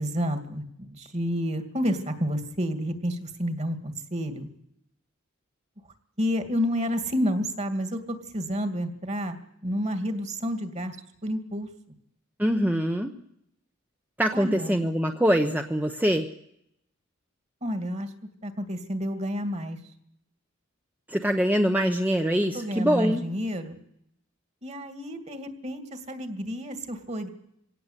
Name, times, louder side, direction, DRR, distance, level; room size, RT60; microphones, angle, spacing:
voice 1, 0.0-4.5 6.2-9.4 9.6-11.0 11.2-11.7 14.3-14.8 17.6-18.1 18.4-19.8 22.5-23.8 24.6-27.3, equal, 35° right, 8 dB, 2.4 m, -30 dB
voice 2, 12.4-13.1 14.2-16.3 21.1-23.2, equal, 10° right, 4 dB, 0.9 m, -24 dB
23.5 x 17.5 x 8.2 m, 0.75 s
head